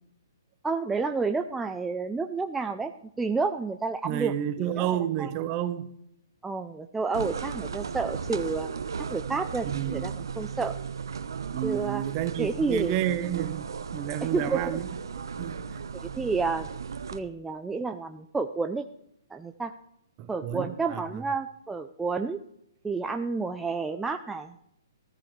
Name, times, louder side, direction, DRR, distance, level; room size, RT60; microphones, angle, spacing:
voice 1, 0.6-2.9 3.2-4.3 4.6-4.9 5.2-5.3 6.4-8.7 9.1-10.7 11.6-12.0 12.4-13.0 14.2-14.8 15.9-16.7 17.1-18.9 19.3-19.7 20.3-22.4 22.8-24.5, right 4 dB, 10° right, 0.5 m, -30 dB
voice 2, 4.0-5.9 9.6-10.0 11.5-14.9 15.4-15.6 20.2-21.2, right 11 dB, 35° right, 1.1 m, -30 dB
sound 1, 7.1-17.2, right 6 dB, 70° right, 1.0 m, -36 dB
15.0 x 13.5 x 3.3 m
hypercardioid pair, 130°, 2 cm